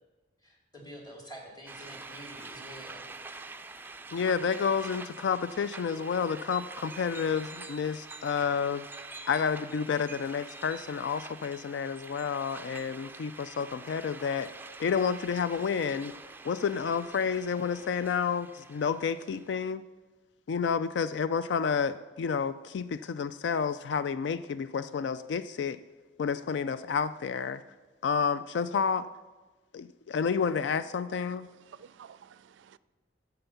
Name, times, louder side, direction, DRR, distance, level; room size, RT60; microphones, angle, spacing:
voice 1, 0.4-3.1, equal, 20° left, 2.3 m, -47 dB
sound 1, 1.7-19.7, right 3 dB, 10° right, 0.4 m, -46 dB
voice 2, 4.1-8.9 9.3-14.5 14.8-16.1 16.4-19.8 20.5-25.8 26.2-27.6 28.0-29.1 29.7-31.5, left 6 dB, 70° left, 0.3 m, -30 dB
voice 3, 31.3-32.8, right 7 dB, 80° right, 0.4 m, -53 dB
9.0 x 7.9 x 7.0 m
head